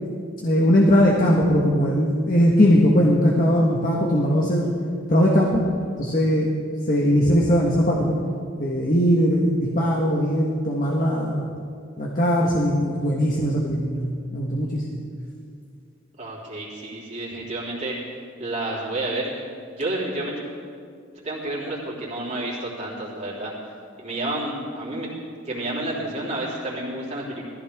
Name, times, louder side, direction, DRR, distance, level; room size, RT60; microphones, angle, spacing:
voice 1, 0.4-4.6 5.1-5.6 6.0-6.5 6.9-8.1 8.6-11.5 12.0-15.0, equal, 40° left, -3 dB, 1.4 m, -20 dB
voice 2, 16.2-18.0 18.4-20.4 21.2-23.5 24.0-25.1 25.4-27.5, right 1 dB, 35° right, -5 dB, 3.5 m, -30 dB
20.0 x 15.0 x 3.6 m, 2.3 s
head